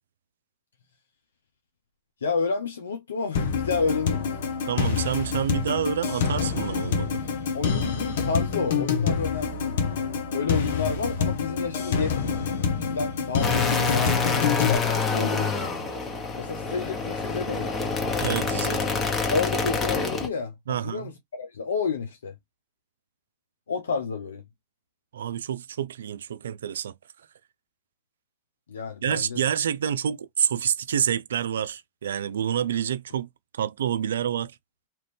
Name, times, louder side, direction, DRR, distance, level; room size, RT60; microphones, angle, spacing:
voice 1, 2.2-4.3 7.5-9.8 10.3-14.9 15.1-16.0 16.4-17.8 19.3-20.5 20.8-22.3 23.7-24.4 28.7-29.4, left 5 dB, 85° left, 0.6 m, -30 dB
sound 1, 3.3-14.8, left 6 dB, 70° left, 1.0 m, -27 dB
voice 2, 4.7-7.2 18.2-18.8 20.7-21.1 25.1-26.9 29.0-33.3 33.5-34.5, right 9 dB, 80° right, 0.4 m, -28 dB
sound 2, 13.4-20.3, left 4 dB, 25° left, 1.0 m, -26 dB
2.9 x 2.6 x 3.4 m
hypercardioid pair, 105°, 0 cm